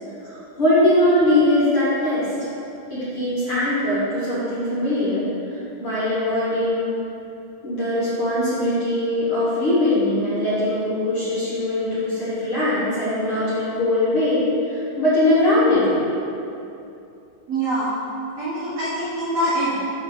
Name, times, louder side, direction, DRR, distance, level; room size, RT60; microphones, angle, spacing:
voice 1, 0.2-2.3 2.9-7.0 7.6-16.0, left 1 dB, 45° left, -10 dB, 2.0 m, -21 dB
voice 2, 17.5-17.9 18.4-19.8, right 1 dB, 60° right, -10 dB, 1.9 m, -24 dB
8.2 x 4.0 x 6.8 m, 2.7 s
omnidirectional pair, 4.5 m